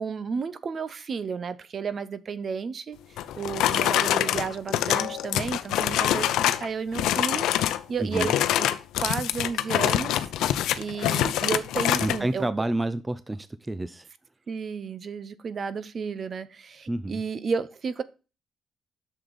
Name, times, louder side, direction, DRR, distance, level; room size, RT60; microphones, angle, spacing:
voice 1, 0.0-3.0 3.3-8.7 9.0-12.5 14.5-18.0, right 5 dB, 45° right, 0.8 m, -32 dB
sound 1, 3.2-6.7 6.9-7.8 8.1-12.2, left 12 dB, 85° left, 0.6 m, -25 dB
voice 2, 8.0-8.3 12.0-14.1 16.9-17.2, right 2 dB, 15° right, 0.5 m, -29 dB
7.7 x 6.5 x 4.0 m
cardioid pair, 90°, 0 cm